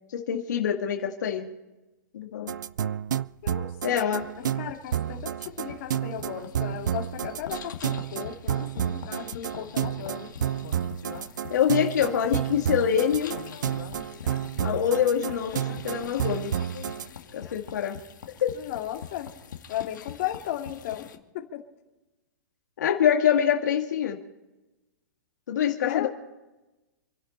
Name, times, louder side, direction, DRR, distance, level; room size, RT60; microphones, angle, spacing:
voice 1, 0.1-1.5 2.1-2.5 3.8-4.2 11.5-13.4 14.6-16.5 17.3-18.0 18.4-18.5 22.8-24.2 25.5-26.1, left 9 dB, 70° left, 2 dB, 2.1 m, -25 dB
sound 1, 2.5-17.1, right 10 dB, 80° right, 0.6 m, -30 dB
voice 2, 3.4-4.1 4.6-10.7 18.5-19.3 19.7-21.1 21.3-21.6 25.9-26.1, left 12 dB, 45° left, 2 dB, 2.6 m, -35 dB
sound 2, 4.1-21.2, left 8 dB, 90° left, 2.1 m, -44 dB
28.5 x 11.5 x 4.1 m, 1.1 s
hypercardioid pair, 160°, 10 cm